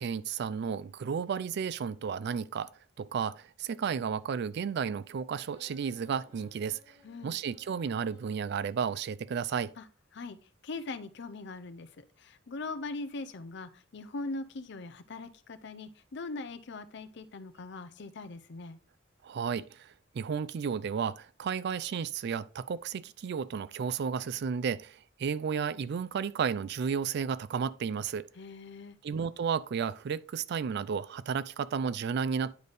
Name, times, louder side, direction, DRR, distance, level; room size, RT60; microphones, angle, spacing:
voice 1, 0.0-2.7 3.0-6.8 7.2-9.7 19.2-28.3 29.0-32.5, right 6 dB, 60° right, 0.3 m, -33 dB
sound 1, 5.3-8.3, left 1 dB, 35° right, 1.8 m, -60 dB
voice 2, 7.0-7.4 9.8-9.9 10.1-10.4 10.6-18.8 28.4-29.0, left 3 dB, 65° left, 0.6 m, -41 dB
9.3 x 4.0 x 3.4 m
head